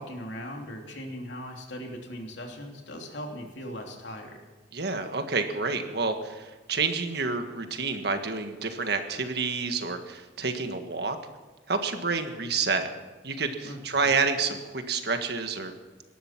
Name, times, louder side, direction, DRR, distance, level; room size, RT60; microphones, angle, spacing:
voice 1, 0.0-4.4 13.6-14.2, equal, 85° left, 2 dB, 2.9 m, -39 dB
voice 2, 4.7-11.2 11.7-12.9 13.2-15.7, right 4 dB, 65° right, 6 dB, 1.6 m, -29 dB
18.5 x 13.0 x 5.9 m, 1.2 s
head